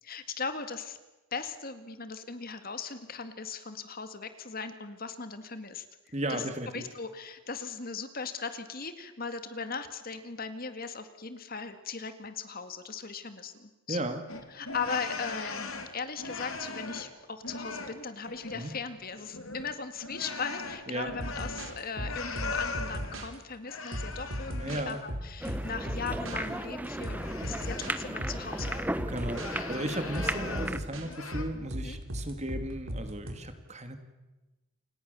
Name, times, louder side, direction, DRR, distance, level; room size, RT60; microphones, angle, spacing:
voice 1, 0.0-1.0 1.3-5.9 6.3-14.1 14.5-28.8 31.8-32.0, left 5 dB, 45° left, 9 dB, 2.0 m, -38 dB
voice 2, 6.1-6.8 13.9-14.2 18.5-18.7 20.9-21.1 24.6-25.0 29.1-34.0, right 1 dB, 30° right, 7 dB, 2.5 m, -35 dB
sound 1, 14.3-17.2 17.4-18.8 19.1-23.2 23.7-25.1 25.4-28.9 29.3-30.8 31.0-31.4, left 4 dB, 75° left, 3.2 m, -40 dB
sound 2, 21.1-23.3 23.9-26.4 27.0-27.9 28.2-29.5 30.1-33.3, equal, 65° right, 4.3 m, -37 dB
sound 3, 25.4-30.8, right 1 dB, 5° right, 1.0 m, -35 dB
29.0 x 27.0 x 7.0 m, 1.1 s
head